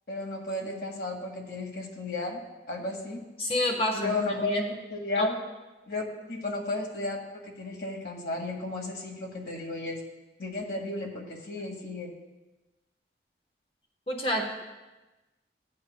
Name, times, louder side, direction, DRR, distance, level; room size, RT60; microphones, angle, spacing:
voice 1, 0.1-2.4 2.7-3.2 3.9-4.6 4.9-5.4 5.9-10.0 10.4-12.1, left 2 dB, 65° left, 1 dB, 1.9 m, -33 dB
voice 2, 3.4-4.7 5.2-5.3 14.1-14.5, left 1 dB, 30° left, 0 dB, 1.1 m, -29 dB
16.0 x 8.6 x 2.2 m, 1.1 s
head